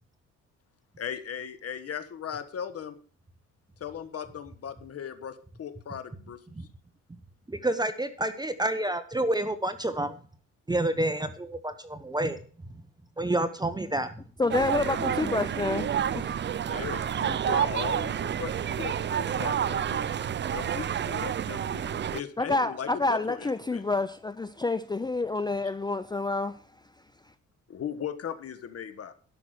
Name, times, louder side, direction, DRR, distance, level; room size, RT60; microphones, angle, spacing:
voice 1, 1.0-3.0 3.8-6.7 16.6-20.2 20.5-21.8 22.1-23.8 25.6-25.7 27.7-29.1, left 8 dB, 50° left, 1.5 m, -38 dB
voice 2, 7.5-10.2 10.7-12.4 13.2-14.1, right 1 dB, 15° right, 1.0 m, -29 dB
voice 3, 14.4-16.3 22.4-26.6, left 3 dB, 15° left, 0.6 m, -28 dB
sound 1, 14.5-22.2, right 9 dB, 35° right, 0.5 m, -29 dB
12.0 x 5.9 x 8.1 m
cardioid pair, 90°, 30 cm